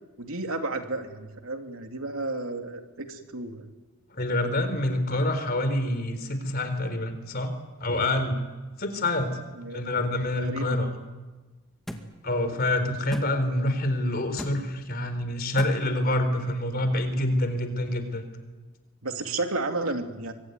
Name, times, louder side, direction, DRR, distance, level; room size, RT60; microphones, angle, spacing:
voice 1, 0.2-3.7 9.5-9.8 10.4-10.9 19.0-20.3, right 2 dB, 85° right, 4 dB, 2.9 m, -32 dB
voice 2, 4.1-7.5 7.8-8.4 8.8-9.3 9.7-10.9 12.2-18.2, left 1 dB, 45° left, 9 dB, 4.1 m, -27 dB
sound 1, 11.9-12.0 13.1-13.3 14.4-14.6 15.6-15.7, equal, ahead, 2.2 m, -35 dB
25.0 x 24.0 x 9.6 m, 1.2 s
head